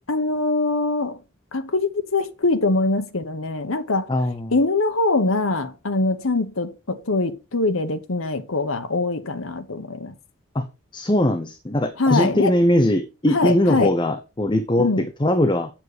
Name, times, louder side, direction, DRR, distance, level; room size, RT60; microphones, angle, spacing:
voice 1, 0.1-1.2 1.5-4.1 4.5-10.1 12.0-12.5 13.3-13.9 14.8-15.1, left 3 dB, 75° left, 1.1 m, -23 dB
voice 2, 4.1-4.6 10.5-10.7 10.9-14.9 15.2-15.7, left 1 dB, 20° left, 0.8 m, -20 dB
8.0 x 7.4 x 5.0 m
head